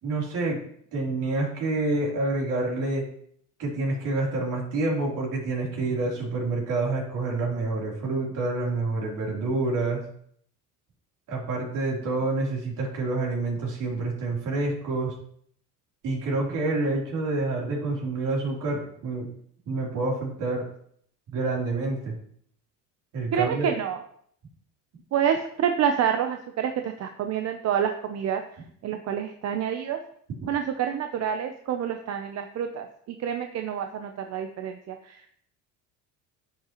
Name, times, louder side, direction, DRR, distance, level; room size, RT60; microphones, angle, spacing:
voice 1, 0.0-0.6 0.9-3.0 3.6-10.0 11.3-15.1 16.0-19.3 19.7-20.7 21.3-22.1 23.1-23.7, right 2 dB, 65° right, -2 dB, 3.5 m, -28 dB
voice 2, 23.3-24.0 25.1-28.4 28.8-30.0 30.5-35.4, right 8 dB, 50° right, 6 dB, 0.7 m, -28 dB
9.9 x 7.5 x 3.0 m, 0.64 s
cardioid pair, 115°, 34 cm